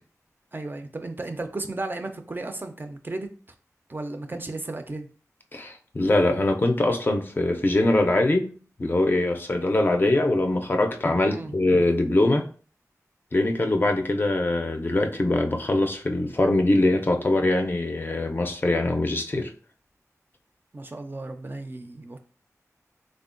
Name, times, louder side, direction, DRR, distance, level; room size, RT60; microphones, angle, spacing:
voice 1, 0.5-3.3 3.9-5.1 11.3-11.5 20.7-22.2, right 2 dB, 35° right, 6 dB, 0.4 m, -34 dB
voice 2, 5.5-8.5 8.8-12.4 13.3-19.5, left 2 dB, 35° left, 4 dB, 0.4 m, -22 dB
3.4 x 2.1 x 2.4 m, 0.40 s
wide cardioid pair, 75°, 6 cm